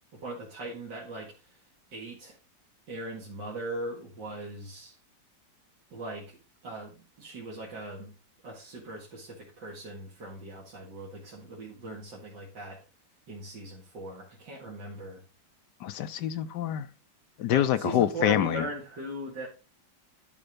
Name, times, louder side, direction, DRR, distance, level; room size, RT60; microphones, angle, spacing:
voice 1, 0.1-1.6 1.9-2.4 2.9-5.0 5.9-6.4 6.6-8.1 8.4-12.8 13.3-15.2 17.5-19.5, right 2 dB, 70° right, -4 dB, 2.8 m, -39 dB
voice 2, 15.8-16.9 17.4-18.6, left 11 dB, 70° left, 13 dB, 1.2 m, -26 dB
12.0 x 4.4 x 5.1 m, 0.33 s
omnidirectional pair, 2.0 m